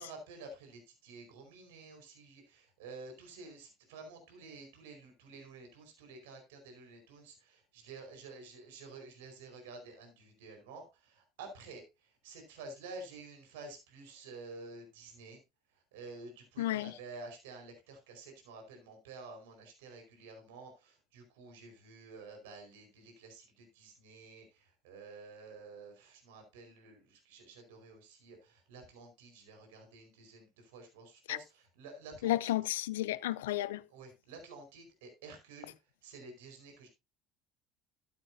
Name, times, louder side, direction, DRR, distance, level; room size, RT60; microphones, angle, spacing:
voice 1, 0.0-15.4 15.9-32.5 33.9-35.7 36.0-36.9, right 3 dB, 75° right, 4.8 m, -51 dB
voice 2, 16.6-16.9 31.3-31.4 32.2-33.8, left 15 dB, 75° left, 0.5 m, -32 dB
14.0 x 9.6 x 2.7 m
hypercardioid pair, 70°, 0 cm